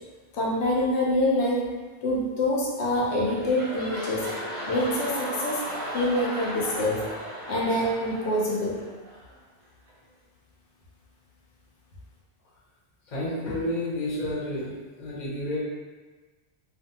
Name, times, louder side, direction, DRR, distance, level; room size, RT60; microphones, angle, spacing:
voice 1, 0.3-1.7 2.0-4.3 4.7-5.7 5.9-7.1 7.5-8.8, left 1 dB, 85° left, -4 dB, 0.9 m, -25 dB
sound 1, 2.8-9.3 9.9-10.0, equal, 50° right, 0.6 m, -36 dB
voice 2, 13.1-15.6, left 1 dB, 45° left, -7 dB, 0.9 m, -30 dB
2.5 x 2.3 x 2.7 m, 1.3 s
omnidirectional pair, 1.1 m